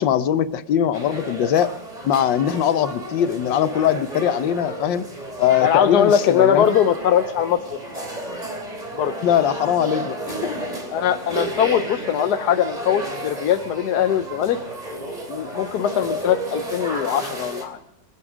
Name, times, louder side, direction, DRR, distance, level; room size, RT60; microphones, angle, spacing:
voice 1, 0.0-1.7 2.0-5.0 5.4-6.7 9.2-10.2 10.4-10.5, left 9 dB, 85° left, 13 dB, 1.5 m, -21 dB
sound 1, 0.9-17.7, right 1 dB, 20° right, 3.0 m, -32 dB
voice 2, 5.6-7.8 9.0-9.1 10.9-14.6 15.3-17.8, left 9 dB, 65° left, 8 dB, 1.2 m, -21 dB
25.0 x 9.9 x 5.0 m, 0.90 s
omnidirectional pair, 2.0 m